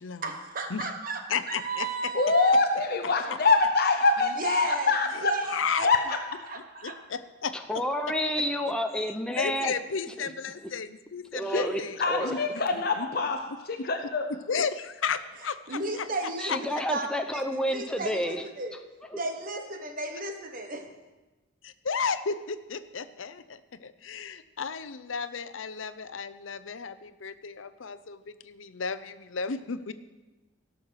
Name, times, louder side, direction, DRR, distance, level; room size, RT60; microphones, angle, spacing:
voice 1, 0.2-2.5 4.4-4.9 5.2-5.9 6.5-7.0 15.7-18.8 19.1-20.9, right 3 dB, 45° right, 5 dB, 1.2 m, -34 dB
voice 2, 1.3-2.1 3.0-3.1 5.5-5.9 6.8-7.8 9.3-12.0 12.2-12.4 12.7-13.1 13.8-13.9 14.5-16.1 16.5-16.6 21.6-29.9, left 6 dB, 80° left, 13 dB, 0.7 m, -33 dB
voice 3, 2.1-5.3 5.8-6.2 11.4-11.7 12.0-13.4 13.7-14.3, left 3 dB, 50° left, 5 dB, 0.8 m, -24 dB
voice 4, 7.7-9.7 10.2-10.3 11.3-12.4 16.4-18.4 19.1-19.2, equal, 5° left, 4 dB, 0.6 m, -30 dB
17.5 x 6.5 x 5.8 m, 1.1 s
head